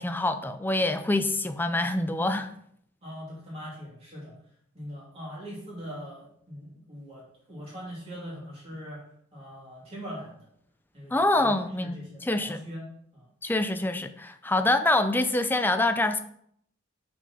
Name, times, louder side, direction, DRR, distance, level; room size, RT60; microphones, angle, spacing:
voice 1, 0.0-2.5 11.1-12.6 13.4-16.2, left 2 dB, 10° left, 0.4 m, -26 dB
voice 2, 3.0-4.3 4.7-7.2 7.5-9.0 9.3-10.4 10.9-12.8 13.1-13.2, equal, 30° right, 2.8 m, -41 dB
6.0 x 4.5 x 5.4 m
head